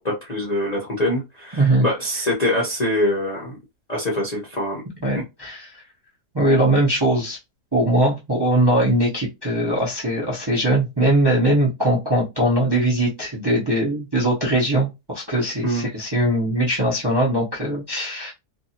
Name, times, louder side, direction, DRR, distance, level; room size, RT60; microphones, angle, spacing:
voice 1, 0.0-3.5 3.9-4.8 15.6-15.9, left 1 dB, 45° left, -3 dB, 0.5 m, -24 dB
voice 2, 5.0-5.8 6.3-7.4 7.7-18.3, right 1 dB, 25° right, -4 dB, 0.5 m, -20 dB
2.6 x 2.5 x 2.7 m, 0.23 s
omnidirectional pair, 1.7 m